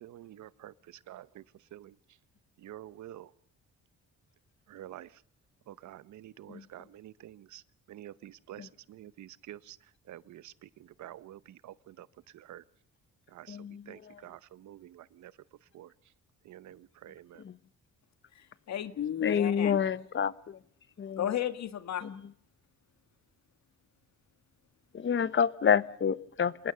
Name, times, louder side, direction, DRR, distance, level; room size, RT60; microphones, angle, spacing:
voice 1, 0.0-1.4 1.7-2.0 2.6-3.3 4.7-5.2 5.7-7.6 7.9-9.8 10.1-12.1 12.3-12.6 13.3-13.6 13.9-15.3 15.7-15.9 16.4-17.4, right 13 dB, 70° right, 0.9 m, -48 dB
voice 2, 13.5-13.8 17.4-17.5 19.2-20.6 21.0-21.3 22.0-22.1 24.9-26.7, left 7 dB, 40° left, 1.0 m, -28 dB
voice 3, 18.4-19.8 21.2-22.1, left 10 dB, 65° left, 1.7 m, -33 dB
27.0 x 19.0 x 6.8 m
cardioid pair, 90°, 30 cm